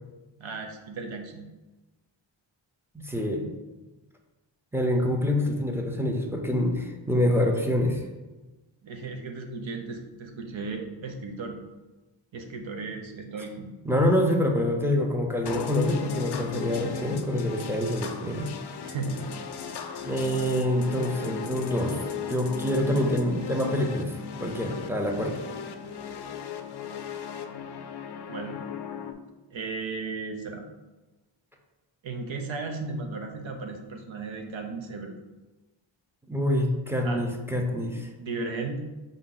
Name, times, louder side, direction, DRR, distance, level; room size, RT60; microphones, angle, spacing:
voice 1, 0.4-1.4 8.8-11.6 12.3-13.7 18.8-20.0 28.3-28.6 29.5-30.6 32.0-35.1 37.0-37.3 38.2-38.8, right 3 dB, 75° right, 4 dB, 0.7 m, -35 dB
voice 2, 2.9-3.5 4.7-8.0 13.8-18.5 20.0-22.0 22.3-25.4 36.3-38.1, left 1 dB, 5° right, 1 dB, 0.6 m, -26 dB
sound 1, 15.4-29.1, left 7 dB, 55° left, 0.5 m, -36 dB
4.9 x 2.7 x 3.8 m, 1.1 s
wide cardioid pair, 90°, 47 cm